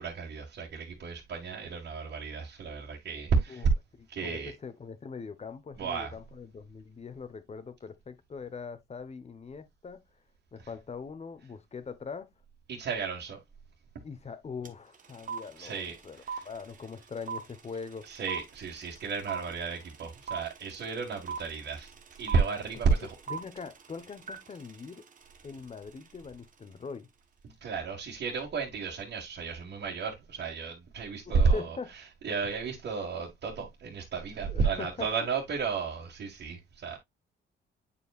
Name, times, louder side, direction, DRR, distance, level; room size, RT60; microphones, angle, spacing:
voice 1, 0.0-3.7 4.1-4.5 5.8-6.1 12.7-13.4 15.6-16.0 16.3-16.4 18.1-21.9 22.2-23.2 27.6-31.8 32.2-37.0, right 5 dB, 60° right, 2.0 m, -32 dB
voice 2, 4.0-10.0 10.5-12.3 14.0-18.1 22.9-23.0 23.3-25.1 25.4-27.1 31.2-31.9 34.5-35.1, left 5 dB, 35° left, 1.1 m, -42 dB
sound 1, 14.6-14.7 14.9-26.1, right 6 dB, 40° right, 1.2 m, -40 dB
8.5 x 4.9 x 2.4 m
cardioid pair, 90°, 20 cm